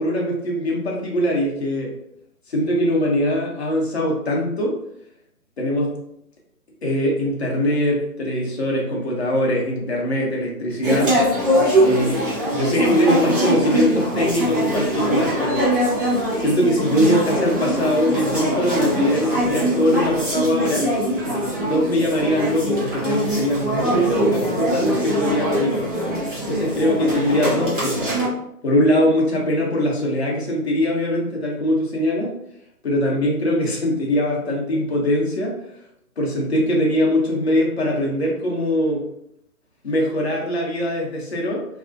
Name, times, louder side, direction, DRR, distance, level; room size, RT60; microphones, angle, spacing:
voice 1, 0.0-1.9 2.5-4.8 5.6-6.0 6.8-11.2 11.8-12.2 12.5-15.8 16.4-20.9 21.7-25.9 26.5-28.2 28.6-32.4 32.8-35.6 36.2-39.1 39.8-41.7, equal, 45° left, -2 dB, 0.7 m, -22 dB
sound 1, 10.8-28.3, equal, 35° right, 0.7 m, -22 dB
2.4 x 2.0 x 2.6 m, 0.77 s
figure-of-eight pair, 140°, 47 cm